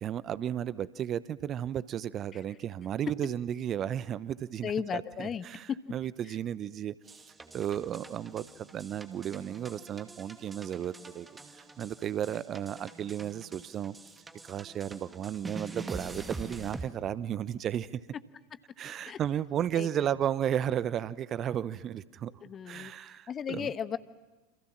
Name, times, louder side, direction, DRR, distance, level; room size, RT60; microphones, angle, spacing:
voice 1, 0.0-6.9 7.5-11.3 11.8-13.9 14.4-17.9 18.8-22.3 22.7-23.7, right 10 dB, 35° right, 18 dB, 0.9 m, -34 dB
voice 2, 4.6-5.8 19.1-19.2 19.8-19.9 22.4-22.9 23.3-24.0, left 8 dB, 30° left, 13 dB, 1.3 m, -35 dB
sound 1, 7.0-16.8, right 3 dB, 15° right, 2.4 m, -45 dB
29.0 x 27.5 x 7.4 m, 1.2 s
figure-of-eight pair, 85°, 0 cm